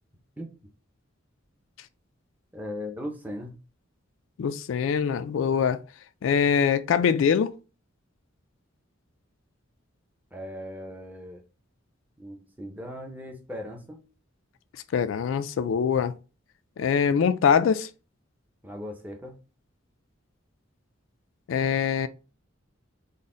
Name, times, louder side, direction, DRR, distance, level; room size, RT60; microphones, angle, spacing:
voice 1, 2.5-3.5 10.3-11.4 12.2-14.0 18.6-19.3, left 1 dB, 10° right, 0.6 m, -38 dB
voice 2, 4.4-5.8 6.2-7.5 14.9-16.1 16.8-17.9 21.5-22.1, left 7 dB, 70° left, 0.3 m, -23 dB
4.0 x 2.1 x 3.7 m
head